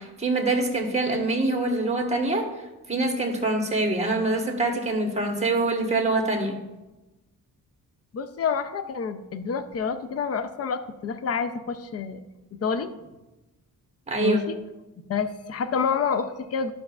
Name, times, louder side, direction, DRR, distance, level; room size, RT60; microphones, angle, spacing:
voice 1, 0.0-2.5 2.9-6.6 14.1-14.4, right 2 dB, 20° right, 1 dB, 1.3 m, -25 dB
voice 2, 8.1-12.2 12.5-12.9 14.2-14.6 15.1-16.7, left 6 dB, 40° left, 10 dB, 0.5 m, -28 dB
12.0 x 6.0 x 2.4 m, 1.1 s
wide cardioid pair, 120°, 37 cm